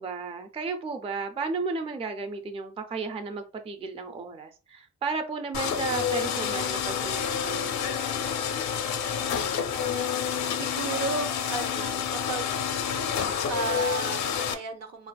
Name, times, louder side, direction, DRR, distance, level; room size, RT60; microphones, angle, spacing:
voice 1, 0.0-8.0, right 4 dB, 20° right, 6 dB, 0.4 m, -34 dB
sound 1, 5.5-14.5, left 8 dB, 70° left, 0.5 m, -29 dB
voice 2, 9.3-9.7 9.9-10.1 10.5-12.6 13.4-15.1, right 4 dB, 60° right, 6 dB, 0.7 m, -34 dB
3.1 x 2.4 x 2.2 m, 0.33 s
cardioid pair, 90°, 30 cm